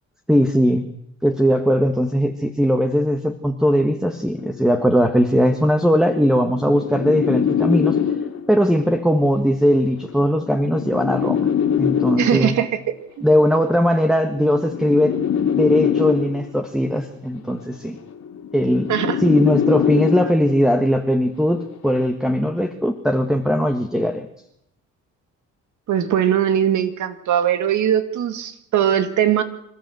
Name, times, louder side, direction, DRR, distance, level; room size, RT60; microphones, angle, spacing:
voice 1, 0.3-0.8 1.2-8.0 8.5-11.5 11.8-12.5 13.2-15.2 15.6-18.0 18.5-18.9 19.2-24.3, equal, ahead, 6 dB, 1.7 m, -19 dB
sound 1, 4.4-4.6 5.5-8.6 9.6-12.6 13.6-16.6 17.6-20.6 21.6-22.0, left 8 dB, 65° left, 2.7 m, -23 dB
voice 2, 12.2-12.7 13.2-13.3 18.9-19.2 25.9-29.4, right 10 dB, 75° right, 9 dB, 2.3 m, -20 dB
26.5 x 13.5 x 8.0 m, 0.78 s
cardioid pair, 90°, 30 cm